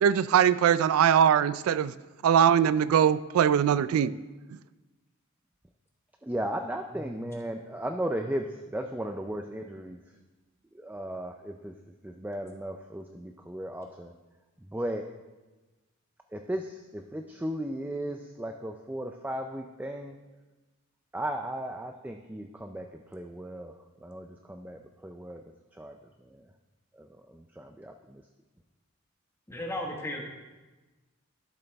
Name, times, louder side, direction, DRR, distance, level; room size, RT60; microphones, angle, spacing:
voice 1, 0.0-1.9 2.2-4.2, right 8 dB, 85° right, 16 dB, 0.3 m, -22 dB
voice 2, 6.2-10.0 10.7-11.7 12.0-14.1 14.7-15.1 16.3-20.2 21.1-22.9 23.1-23.7 24.0-25.4 25.8-26.0 26.3-26.4 27.0-28.2, right 1 dB, 10° right, 5 dB, 0.3 m, -36 dB
voice 3, 6.9-7.2 29.5-30.2, left 1 dB, 15° left, 0 dB, 1.3 m, -36 dB
12.0 x 7.4 x 3.4 m, 1.2 s
head